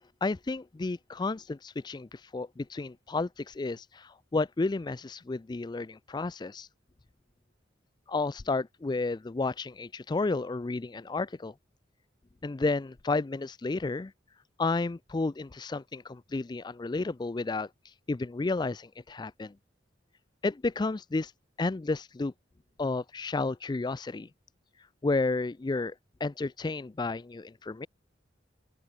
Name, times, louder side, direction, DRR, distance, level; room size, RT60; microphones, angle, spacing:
voice 1, 0.2-6.7 8.1-11.5 12.4-14.1 14.6-17.7 18.1-19.5 20.4-21.3 21.6-22.3 22.8-24.3 25.0-25.9 26.2-27.9, left 3 dB, 25° left, 0.4 m, -31 dB
open air
head